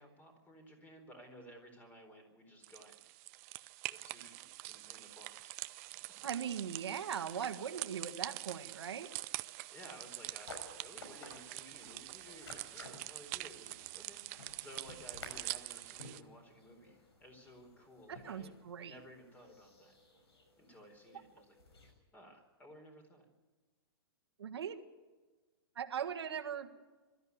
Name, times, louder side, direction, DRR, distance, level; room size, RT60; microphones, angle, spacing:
voice 1, 0.0-3.0 3.9-5.6 9.7-14.2 14.5-18.6 18.8-19.9 20.6-21.6 22.1-23.3, equal, 10° left, 5 dB, 4.2 m, -56 dB
sound 1, 2.6-16.2, right 21 dB, 35° right, 0.6 m, -45 dB
voice 2, 6.2-9.1 18.1-19.0 24.4-24.8 25.8-26.7, right 8 dB, 85° right, 5 dB, 1.8 m, -40 dB
sound 2, 10.2-21.9, left 2 dB, 85° left, 6.2 m, -55 dB
22.5 x 13.5 x 9.6 m, 1.3 s
hypercardioid pair, 150°, 13 cm